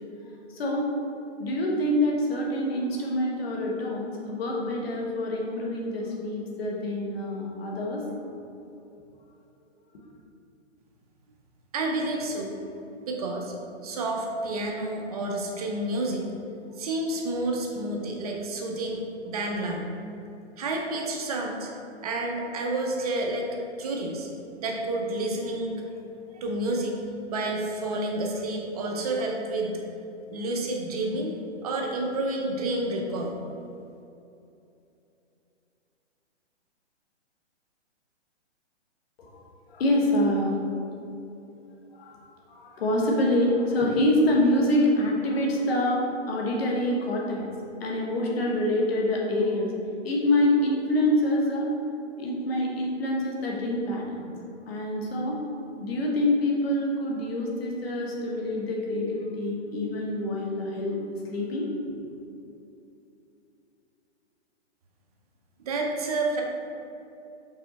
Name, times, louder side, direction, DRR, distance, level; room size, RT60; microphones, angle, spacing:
voice 1, 0.2-0.8 1.4-8.0 39.2-39.4 39.7-40.5 41.9-42.2 42.5-47.4 47.8-49.7 50.0-51.7 52.2-54.3 54.7-55.4 55.8-61.0 61.2-61.7, left 1 dB, 60° left, -2 dB, 1.4 m, -26 dB
voice 2, 11.7-12.5 13.1-13.6 13.8-16.2 16.8-19.8 20.6-21.7 22.0-23.5 23.8-24.3 24.6-25.8 26.3-27.0 27.3-29.8 30.3-33.3 65.6-66.4, right 2 dB, 35° right, 1 dB, 0.6 m, -29 dB
5.4 x 4.4 x 4.1 m, 2.8 s
hypercardioid pair, 145°, 35 cm